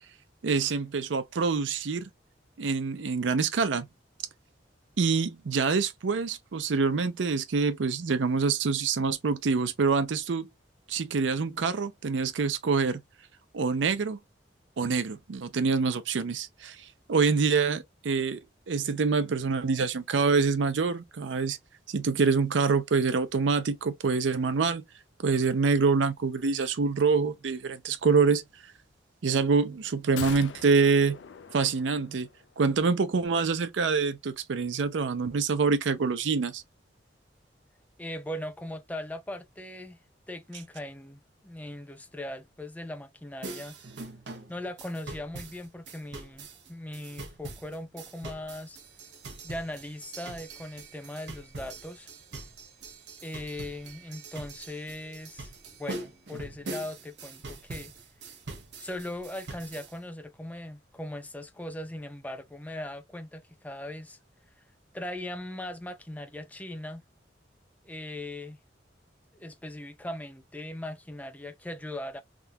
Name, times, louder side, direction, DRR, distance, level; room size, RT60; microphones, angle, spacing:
voice 1, 0.4-2.1 2.6-3.9 5.0-10.5 10.9-13.0 13.5-14.2 14.8-18.4 18.7-21.6 21.9-24.8 25.2-28.4 29.2-31.2 31.5-32.3 32.6-36.6, right 4 dB, 90° right, 0.5 m, -26 dB
sound 1, 30.2-32.5 32.8-32.9, left 7 dB, 90° left, 0.5 m, -42 dB
voice 2, 38.0-40.0 40.3-43.8 44.5-48.8 49.4-52.1 53.2-55.5 55.8-57.9 58.8-64.2 64.9-67.0 67.8-68.6 69.3-72.2, left 1 dB, 10° left, 0.5 m, -39 dB
sound 2, 43.4-60.0, right 2 dB, 70° right, 0.9 m, -43 dB
3.6 x 2.7 x 2.3 m
head